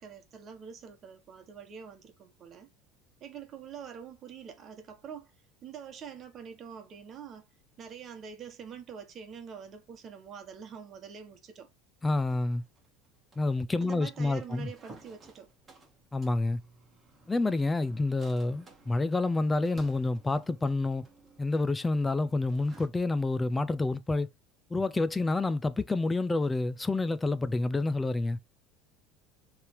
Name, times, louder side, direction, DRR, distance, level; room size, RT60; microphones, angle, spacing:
voice 1, 0.0-2.7 3.2-5.3 5.6-7.5 7.8-11.7 13.8-15.5, right 7 dB, 35° right, 1.5 m, -45 dB
voice 2, 12.0-12.6 13.4-14.7 16.1-16.6 17.3-21.0 21.4-24.3 24.7-28.4, left 2 dB, 10° left, 0.5 m, -28 dB
sound 1, 12.3-22.9, right 2 dB, 15° right, 2.1 m, -56 dB
6.7 x 3.4 x 4.6 m
cardioid pair, 140°, 0 cm